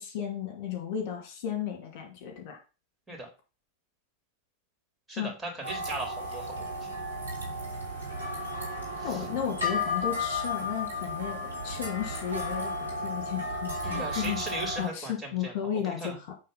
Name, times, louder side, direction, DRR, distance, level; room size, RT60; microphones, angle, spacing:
voice 1, 0.0-2.6 5.2-5.3 9.0-14.4 14.8-16.3, left 9 dB, 45° left, 2 dB, 2.5 m, -34 dB
voice 2, 5.1-6.9 9.0-9.2 13.8-15.5 15.8-16.2, right 2 dB, 10° right, 0 dB, 3.7 m, -38 dB
sound 1, 5.6-14.9, left 2 dB, 85° right, 3.1 m, -34 dB
8.4 x 3.9 x 5.7 m, 0.32 s
figure-of-eight pair, 90°, 0 cm